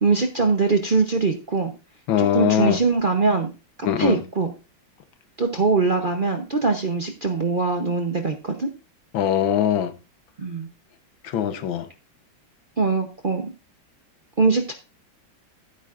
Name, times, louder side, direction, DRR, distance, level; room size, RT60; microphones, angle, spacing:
voice 1, 0.0-1.7 2.2-3.5 4.0-4.5 5.4-8.7 10.4-10.7 12.8-13.5 14.4-14.7, right 4 dB, 45° right, 0.7 m, -22 dB
voice 2, 2.1-2.8 3.8-4.2 9.1-9.9 11.2-11.9, left 10 dB, 85° left, 1.7 m, -21 dB
14.0 x 8.6 x 2.5 m
omnidirectional pair, 2.1 m